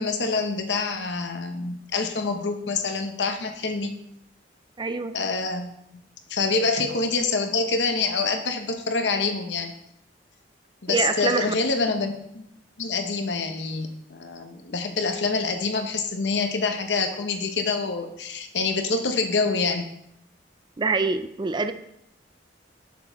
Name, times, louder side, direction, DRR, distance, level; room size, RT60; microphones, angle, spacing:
voice 1, 0.0-3.9 5.1-5.7 6.3-9.7 10.8-12.4 12.8-19.8, left 4 dB, 80° left, 5 dB, 1.0 m, -26 dB
voice 2, 4.8-5.2 10.9-11.5 20.8-21.7, right 4 dB, 25° right, 10 dB, 0.4 m, -25 dB
6.8 x 6.8 x 3.9 m, 0.76 s
head